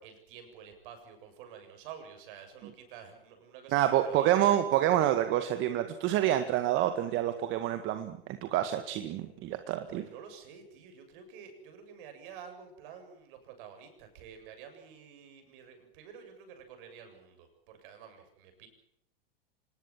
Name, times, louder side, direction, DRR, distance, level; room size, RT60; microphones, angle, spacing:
voice 1, 0.0-4.6 9.9-18.7, right 7 dB, 60° right, 6 dB, 7.7 m, -50 dB
voice 2, 3.7-10.0, right 12 dB, 40° right, 8 dB, 1.9 m, -28 dB
26.0 x 20.0 x 7.5 m, 0.75 s
hypercardioid pair, 120°, 31 cm